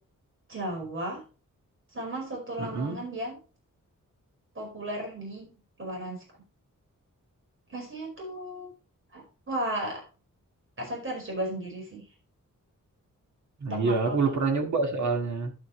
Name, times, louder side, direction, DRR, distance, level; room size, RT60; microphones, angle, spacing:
voice 1, 0.5-1.2 1.9-3.4 4.5-5.5 5.8-6.2 7.7-8.7 9.1-10.0 10.8-12.0 13.7-14.2, right 1 dB, 40° right, 0 dB, 5.0 m, -35 dB
voice 2, 2.6-3.0 13.6-15.5, right 4 dB, 65° right, 4 dB, 2.1 m, -27 dB
10.5 x 8.2 x 3.2 m, 0.33 s
wide cardioid pair, 160°, 32 cm